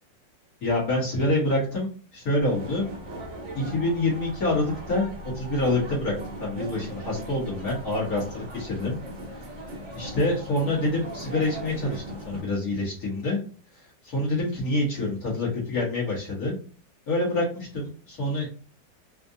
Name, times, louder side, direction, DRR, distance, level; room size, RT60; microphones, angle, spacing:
voice 1, 0.6-2.9 3.5-9.0 9.4-9.5 9.9-13.4 13.7-16.6 17.1-18.5, left 2 dB, 55° left, -5 dB, 2.2 m, -27 dB
sound 1, 2.4-12.4, right 1 dB, 45° right, 1.3 m, -39 dB
4.3 x 2.6 x 2.6 m, 0.38 s
omnidirectional pair, 1.9 m